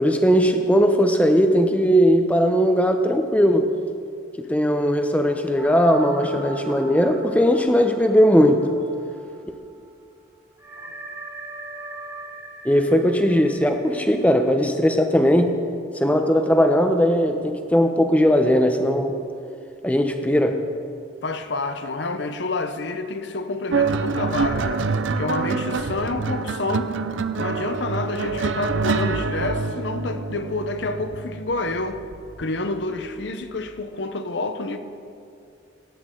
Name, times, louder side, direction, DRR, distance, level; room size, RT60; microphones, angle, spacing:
voice 1, 0.0-3.7 4.4-8.7 12.6-15.5 16.0-19.2 19.8-20.6, equal, 5° left, 6 dB, 0.7 m, -18 dB
sound 1, 5.6-9.6 9.9-10.0 10.6-15.3, right 1 dB, 15° right, 1.7 m, -40 dB
voice 2, 21.2-24.8 25.2-26.9 27.4-32.0 32.4-34.8, left 3 dB, 65° left, 9 dB, 0.8 m, -28 dB
sound 2, 23.7-32.4 33.4-33.7, right 4 dB, 75° right, 0.5 m, -26 dB
18.5 x 9.5 x 3.8 m, 2.4 s
head